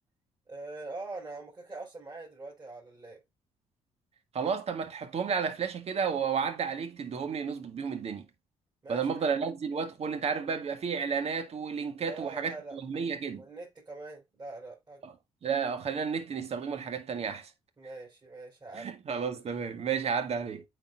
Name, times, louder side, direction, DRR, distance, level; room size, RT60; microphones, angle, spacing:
voice 1, 0.5-3.2 8.8-9.4 12.1-12.8 13.4-15.0 17.8-18.9, right 3 dB, 30° right, 4.1 m, -43 dB
voice 2, 4.3-8.3 8.9-13.4 15.0-15.1 15.4-17.5 18.7-20.6, right 6 dB, 55° right, 1.6 m, -32 dB
8.9 x 4.6 x 2.3 m
supercardioid pair, 65°, 13 cm